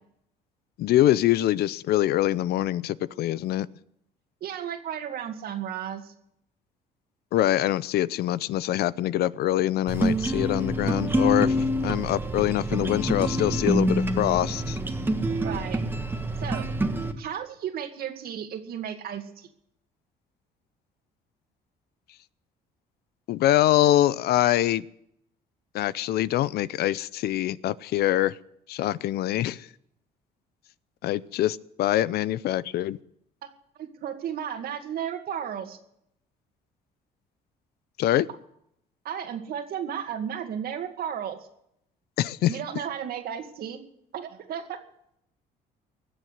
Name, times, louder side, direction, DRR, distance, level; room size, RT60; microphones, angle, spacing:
voice 1, 0.8-3.7 7.3-11.6 11.8-14.8 23.3-24.8 25.7-28.3 28.7-29.7 31.0-33.0 38.0-38.3 42.2-42.6, left 13 dB, 70° left, 19 dB, 0.6 m, -24 dB
voice 2, 4.4-6.1 15.4-15.8 16.4-16.7 17.2-19.5 33.8-35.8 39.0-41.4 42.5-43.8 44.1-44.8, right 9 dB, 65° right, 6 dB, 2.2 m, -34 dB
sound 1, 9.9-17.1, right 1 dB, 15° right, 1.4 m, -26 dB
20.5 x 7.8 x 8.0 m, 0.75 s
cardioid pair, 110°, 17 cm